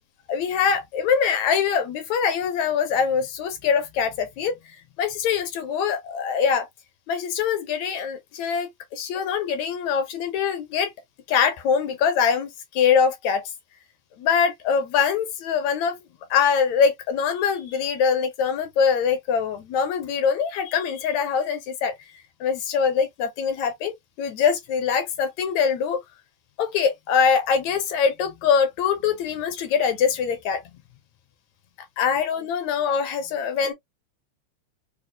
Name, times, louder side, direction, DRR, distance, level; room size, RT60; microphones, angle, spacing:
voice 1, 0.3-6.7 7.1-10.9 11.3-13.4 14.2-16.0 16.3-21.9 22.4-26.0 26.6-30.6 32.0-33.7, left 6 dB, 75° left, 1.8 m, -23 dB
4.9 x 2.0 x 2.2 m
omnidirectional pair, 3.6 m